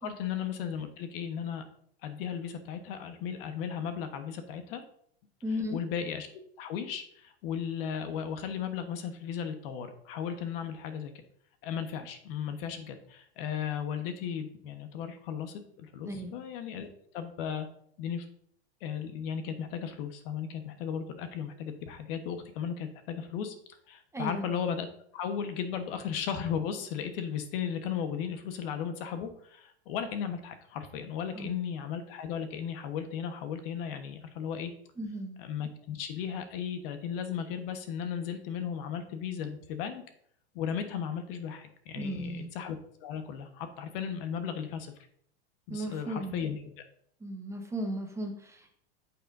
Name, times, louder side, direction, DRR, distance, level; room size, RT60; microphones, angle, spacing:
voice 1, 0.0-1.7 2.0-4.8 5.7-11.1 11.6-16.9 17.1-17.7 18.0-18.3 18.8-23.5 23.9-24.9 25.1-34.7 35.4-40.0 40.5-44.9 45.7-46.7, left 8 dB, 60° left, 8 dB, 1.2 m, -36 dB
voice 2, 5.4-5.8 16.1-16.4 24.1-24.5 31.3-31.5 35.0-35.4 42.0-42.5 45.7-46.4 47.2-48.7, equal, 10° right, 3 dB, 1.0 m, -36 dB
8.8 x 7.5 x 2.6 m, 0.65 s
supercardioid pair, 130°, 33 cm